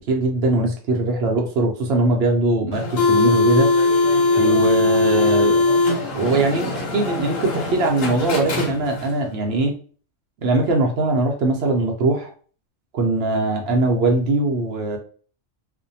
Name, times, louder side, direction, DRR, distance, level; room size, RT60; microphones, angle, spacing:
voice 1, 0.1-3.7 4.4-5.6 6.1-9.7 10.4-12.3 12.9-15.0, right 2 dB, 65° right, 2 dB, 0.7 m, -21 dB
sound 1, 2.7-9.2, left 3 dB, 85° left, 1.2 m, -20 dB
2.5 x 2.1 x 2.6 m, 0.43 s
omnidirectional pair, 1.3 m